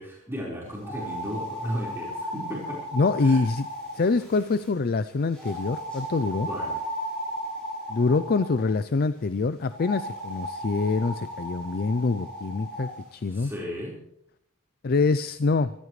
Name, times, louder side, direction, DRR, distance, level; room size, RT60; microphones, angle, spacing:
voice 1, 0.0-2.8 3.2-3.4 6.5-6.7 13.3-13.9, equal, 10° right, -5 dB, 4.6 m, -35 dB
sound 1, 0.8-4.7 5.3-8.6 9.7-12.9, equal, 5° left, 7.7 m, -35 dB
voice 2, 2.9-3.7 3.9-6.5 7.9-13.5 14.8-15.7, left 3 dB, 45° left, 13 dB, 0.5 m, -25 dB
25.0 x 14.5 x 3.3 m, 0.74 s
head